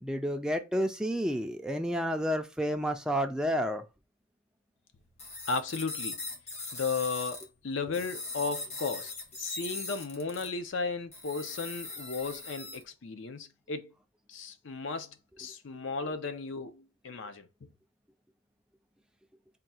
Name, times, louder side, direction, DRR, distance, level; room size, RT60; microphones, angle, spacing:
voice 1, 0.0-3.8, equal, 5° right, 0.3 m, -30 dB
sound 1, 5.2-7.5 7.9-10.5 11.1-12.8, left 2 dB, 30° left, 0.9 m, -40 dB
voice 2, 5.5-6.2 6.7-9.1 9.4-13.9 14.3-17.5, left 4 dB, 60° left, 0.5 m, -35 dB
3.7 x 2.3 x 4.2 m
head